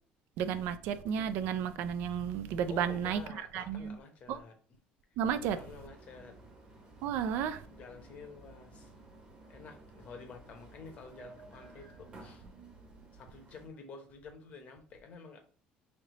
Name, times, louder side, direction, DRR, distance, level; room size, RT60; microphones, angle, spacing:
voice 1, 0.4-3.2 3.5-4.0 4.3-4.4 5.2-5.6 7.0-7.6, right 8 dB, 70° right, 0.4 m, -32 dB
voice 2, 2.7-4.6 5.6-6.4 7.7-8.9 9.5-12.4 13.1-15.4, left 4 dB, 45° left, 0.8 m, -50 dB
sound 1, 5.2-13.7, right 2 dB, 30° right, 0.9 m, -54 dB
3.2 x 2.7 x 4.0 m
cardioid pair, 135°, 3 cm